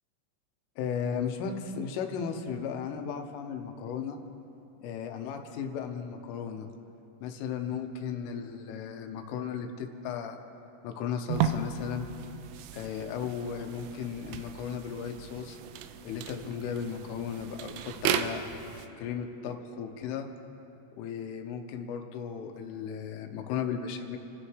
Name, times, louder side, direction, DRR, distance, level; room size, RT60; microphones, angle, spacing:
voice 1, 0.8-4.2 4.8-6.7 7.2-10.4 10.8-12.1 12.7-15.6 16.0-18.4 19.0-20.3 21.0-24.2, left 7 dB, 90° left, 5 dB, 3.5 m, -35 dB
sound 1, 11.3-18.9, right 8 dB, 85° right, 3.2 m, -35 dB
28.5 x 14.5 x 3.2 m, 2.8 s
omnidirectional pair, 5.7 m